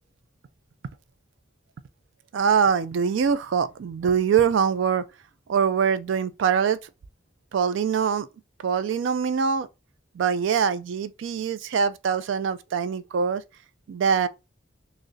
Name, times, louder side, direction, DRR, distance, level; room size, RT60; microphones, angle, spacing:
voice 1, 2.3-5.1 5.5-6.8 7.5-8.3 8.6-9.7 10.2-13.4 13.9-14.3, right 6 dB, 75° right, 0.3 m, -23 dB
6.2 x 2.1 x 2.6 m
head